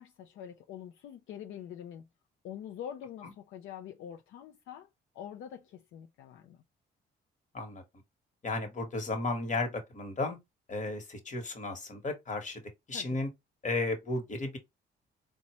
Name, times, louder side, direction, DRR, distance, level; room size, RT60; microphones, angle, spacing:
voice 1, 0.0-2.1 2.4-4.9 5.1-6.6 12.9-13.2, left 9 dB, 80° left, 0.5 m, -45 dB
voice 2, 8.4-10.4 10.7-12.6 12.9-13.3 13.6-14.6, left 2 dB, 40° left, 1.3 m, -34 dB
4.0 x 2.3 x 2.9 m
cardioid pair, 90°, 20 cm